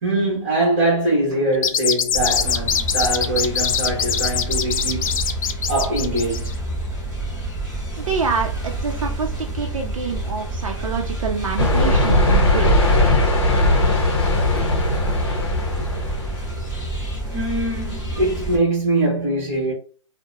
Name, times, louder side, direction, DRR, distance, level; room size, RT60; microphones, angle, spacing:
voice 1, 0.0-5.2 5.7-6.5 10.7-10.9 12.4-12.5 17.3-19.7, right 1 dB, 25° right, 1.2 m, -23 dB
sound 1, 1.5-6.5, left 7 dB, 80° left, 0.4 m, -23 dB
sound 2, 2.1-18.6, right 2 dB, ahead, 0.4 m, -28 dB
voice 2, 8.0-12.7, right 5 dB, 75° right, 0.6 m, -26 dB
sound 3, 11.6-16.5, left 1 dB, 50° left, 0.7 m, -18 dB
2.8 x 2.1 x 2.3 m
hypercardioid pair, 180°, 17 cm